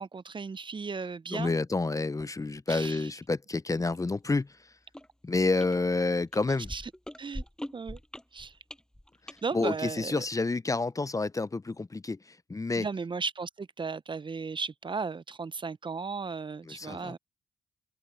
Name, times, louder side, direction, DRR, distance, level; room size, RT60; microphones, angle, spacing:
voice 1, 0.0-1.5 2.7-3.1 6.7-6.8 7.2-7.4 7.7-8.0 8.3-8.5 9.4-10.2 12.8-17.2, right 4 dB, 35° right, 0.7 m, -35 dB
voice 2, 1.3-4.5 5.2-6.7 9.5-12.2 12.5-12.9 16.7-17.2, left 3 dB, 25° left, 0.8 m, -29 dB
sound 1, 4.9-5.1 5.4-5.8 6.3-9.4 10.1-10.2, equal, 5° left, 7.8 m, -41 dB
supercardioid pair, 50°, 14 cm